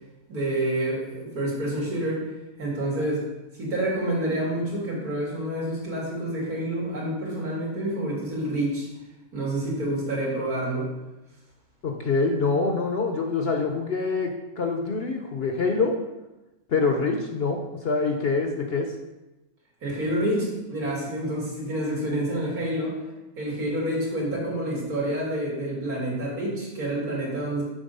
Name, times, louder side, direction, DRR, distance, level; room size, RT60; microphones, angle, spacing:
voice 1, 0.3-2.3 2.6-3.3 3.6-8.9 9.3-10.9 19.8-23.0 23.4-27.6, right 1 dB, 80° right, -5 dB, 2.8 m, -28 dB
voice 2, 11.8-15.9 16.7-18.9, left 4 dB, 50° left, 3 dB, 0.8 m, -25 dB
7.3 x 4.3 x 5.4 m, 1.0 s
omnidirectional pair, 1.6 m